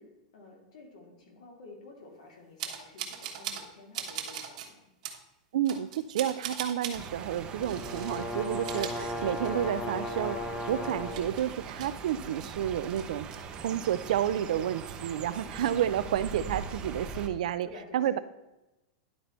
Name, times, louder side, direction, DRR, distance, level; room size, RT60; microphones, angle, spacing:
voice 1, 0.0-4.9 15.7-16.4 17.6-18.2, left 3 dB, 80° left, 1 dB, 2.3 m, -51 dB
sound 1, 2.6-3.7 3.9-4.7 5.0-5.2 5.7-7.0 7.6-8.2 8.5-9.7 10.1-10.2 10.6-12.5 12.8-13.4, right 9 dB, 60° right, 1.2 m, -40 dB
voice 2, 5.5-10.4 10.7-13.3 13.6-17.7 17.9-18.2, right 10 dB, 75° right, 13 dB, 0.4 m, -30 dB
sound 2, 6.9-17.3, right 6 dB, 25° right, 0.6 m, -41 dB
sound 3, 7.4-11.3, left 2 dB, 15° left, 0.7 m, -36 dB
11.0 x 4.1 x 4.3 m, 0.97 s
supercardioid pair, 160°, 4 cm